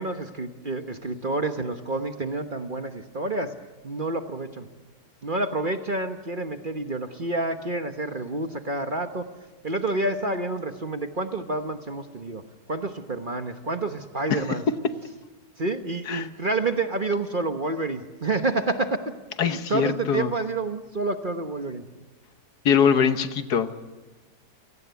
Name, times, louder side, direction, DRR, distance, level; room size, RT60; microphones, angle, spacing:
voice 1, 0.0-3.5 3.8-4.7 5.2-9.2 9.6-12.4 12.7-14.6 15.6-19.0 19.4-21.8, right 2 dB, 35° right, 7 dB, 1.2 m, -28 dB
voice 2, 19.4-20.3 22.6-23.7, left 7 dB, 70° left, 10 dB, 1.6 m, -22 dB
29.5 x 18.5 x 8.3 m, 1.3 s
omnidirectional pair, 1.8 m